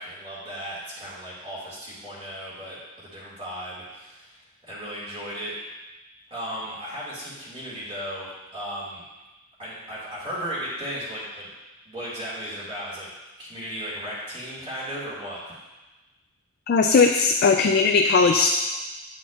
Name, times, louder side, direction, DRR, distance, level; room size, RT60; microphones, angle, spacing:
voice 1, 0.0-5.5 6.3-9.0 9.6-11.5 11.9-13.1 13.4-15.5, equal, 25° right, -7 dB, 2.1 m, -35 dB
voice 2, 16.7-18.5, left 4 dB, 45° left, 3 dB, 0.3 m, -18 dB
8.5 x 5.9 x 2.5 m, 1.1 s
head